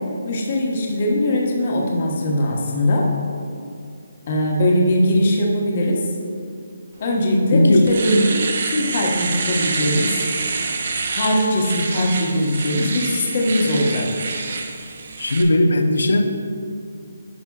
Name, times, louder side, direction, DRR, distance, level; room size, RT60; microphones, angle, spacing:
voice 1, 0.2-3.1 4.3-6.1 7.0-10.2 11.1-14.1, left 1 dB, 35° left, -1 dB, 1.1 m, -20 dB
Domestic sounds home sounds, 7.2-7.3 7.7-15.4, right 4 dB, 45° right, 0.7 m, -27 dB
voice 2, 7.5-7.9 15.2-16.2, left 1 dB, 80° left, 6 dB, 0.7 m, -16 dB
10.5 x 6.6 x 2.4 m, 2.4 s
hypercardioid pair, 175°, 0 cm